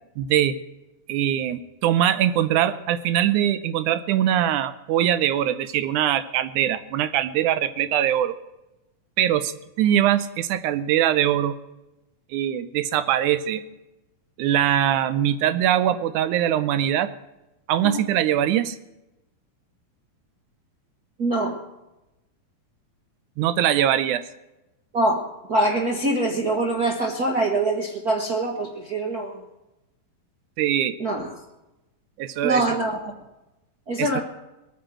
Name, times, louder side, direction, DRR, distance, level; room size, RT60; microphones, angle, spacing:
voice 1, 0.2-0.6 1.1-8.4 9.2-11.5 12.3-13.6 14.4-17.1 17.7-18.8 23.4-24.2 30.6-31.0 32.2-32.6 34.0-34.1, right 11 dB, 80° right, 14 dB, 1.8 m, -22 dB
voice 2, 21.2-21.6 24.9-29.4 31.0-31.3 32.4-33.1 33.9-34.2, right 2 dB, 60° right, 1 dB, 0.9 m, -24 dB
20.0 x 9.3 x 7.6 m, 0.96 s
omnidirectional pair, 4.2 m